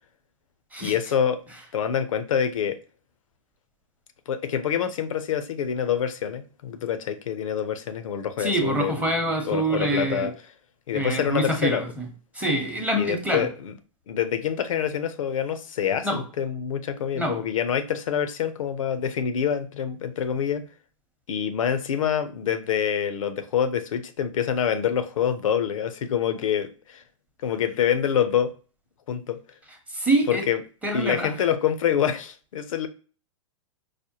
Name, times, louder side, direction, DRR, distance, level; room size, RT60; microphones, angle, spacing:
voice 1, 0.8-1.4 1.7-2.8 4.3-10.3 10.9-11.8 13.0-13.7 14.1-20.6 21.3-27.0 27.4-28.5 29.1-29.4 30.3-30.6 30.9-32.9, left 8 dB, 75° left, 0.6 m, -26 dB
voice 2, 8.4-10.3 10.9-12.0 12.3-13.5 16.0-16.2 17.2-17.4 29.9-30.4 30.8-31.3, right 1 dB, 10° right, 0.8 m, -25 dB
4.9 x 2.1 x 2.8 m
hypercardioid pair, 125°, 17 cm